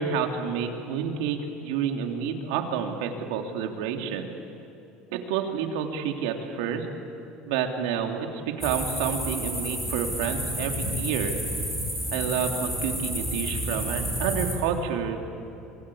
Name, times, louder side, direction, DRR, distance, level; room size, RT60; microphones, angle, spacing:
voice 1, 0.0-4.3 5.1-6.9 7.5-11.3 12.1-15.2, right 7 dB, 85° right, 4 dB, 3.1 m, -29 dB
sound 1, 8.6-14.6, equal, 5° left, 5.1 m, -30 dB
27.5 x 22.5 x 8.7 m, 2.9 s
cardioid pair, 165°, 2 cm